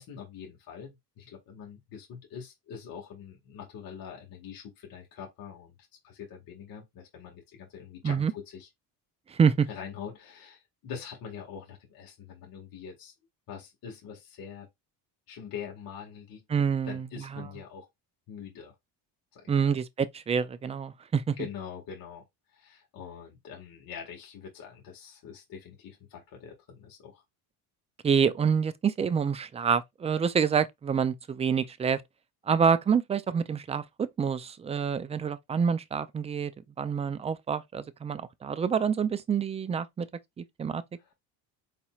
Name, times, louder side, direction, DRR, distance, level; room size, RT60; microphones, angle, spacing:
voice 1, 0.0-5.7 6.0-8.7 9.7-13.1 13.5-14.7 15.3-16.4 16.8-17.9 18.3-18.7 19.3-19.7 21.4-22.2 22.5-27.2 41.0-41.1, left 7 dB, 55° left, 1.7 m, -44 dB
voice 2, 9.3-9.7 16.5-17.5 19.5-21.4 28.0-32.0 32.5-36.5 36.8-40.1 40.4-40.8, right 6 dB, 15° right, 0.3 m, -27 dB
4.3 x 4.1 x 2.3 m
cardioid pair, 115°, 41 cm